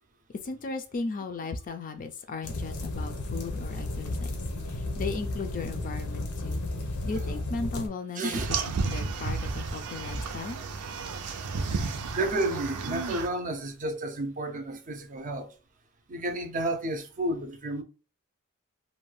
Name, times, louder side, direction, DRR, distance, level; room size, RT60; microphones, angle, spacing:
voice 1, 0.4-4.4 4.7-6.6 7.0-8.6 8.8-10.6, left 4 dB, 40° left, 0.4 m, -36 dB
sound 1, 2.4-7.9, left 2 dB, 85° left, 0.7 m, -33 dB
voice 2, 8.1-8.5 12.1-15.5 16.1-17.8, right 1 dB, 35° right, 0.5 m, -31 dB
sound 2, 8.3-13.3, right 4 dB, 90° right, 0.5 m, -32 dB
2.6 x 2.2 x 3.1 m
head